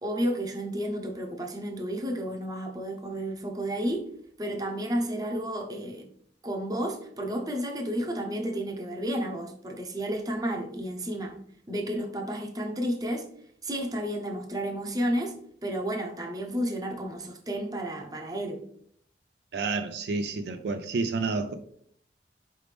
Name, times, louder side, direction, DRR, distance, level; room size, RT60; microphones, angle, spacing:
voice 1, 0.0-4.1 4.4-6.1 6.4-11.4 11.7-13.3 13.6-15.3 15.6-18.6, equal, 20° right, 0.7 m, -31 dB
voice 2, 19.5-21.5, right 3 dB, 65° right, 0.3 m, -29 dB
4.9 x 3.4 x 3.2 m
head